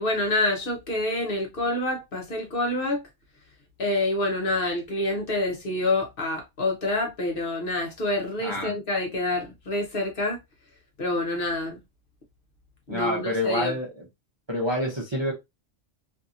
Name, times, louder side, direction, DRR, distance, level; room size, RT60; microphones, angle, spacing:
voice 1, 0.0-3.0 3.8-10.4 11.0-11.8 12.9-13.8, left 2 dB, 55° left, 0.8 m, -27 dB
voice 2, 8.4-8.7 12.9-14.0 14.5-15.3, left 1 dB, 30° right, 0.6 m, -27 dB
2.7 x 2.6 x 2.4 m
omnidirectional pair, 1.3 m